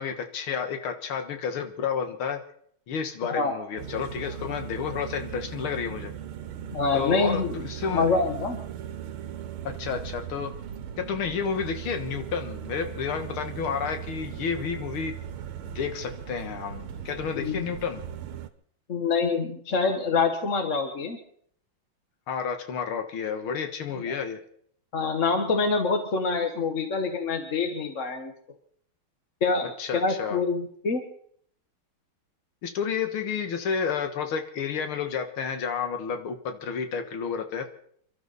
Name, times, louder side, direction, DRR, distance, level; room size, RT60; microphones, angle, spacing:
voice 1, 0.0-2.4 2.9-6.1 6.9-8.1 9.6-10.5 11.1-15.1 15.6-18.0 22.3-24.4 29.8-30.4 32.6-37.7, left 6 dB, 75° left, 7 dB, 2.2 m, -31 dB
sound 1, 3.8-18.5, right 9 dB, 85° right, 1.9 m, -38 dB
voice 2, 6.7-7.5 7.9-8.6 17.3-17.6 18.9-21.2 24.0-24.1 24.9-28.3 29.4-31.0, left 4 dB, 40° left, 5 dB, 1.4 m, -26 dB
28.5 x 12.0 x 4.1 m, 0.64 s
omnidirectional pair, 2.3 m